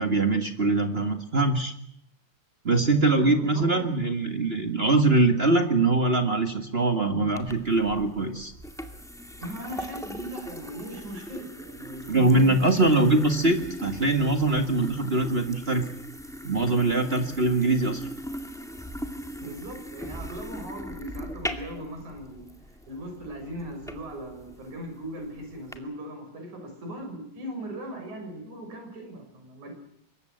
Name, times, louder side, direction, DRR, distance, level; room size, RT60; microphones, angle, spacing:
voice 1, 0.0-1.7 2.6-8.5 12.1-15.8 16.4-18.0, right 2 dB, 30° right, 6 dB, 1.1 m, -23 dB
voice 2, 3.1-3.9 9.4-13.2 19.4-22.4 22.9-29.7, right 1 dB, 65° right, 4 dB, 8.0 m, -39 dB
sound 1, 7.3-25.8, equal, ahead, 1.2 m, -39 dB
25.0 x 22.5 x 7.9 m, 0.71 s
omnidirectional pair, 3.7 m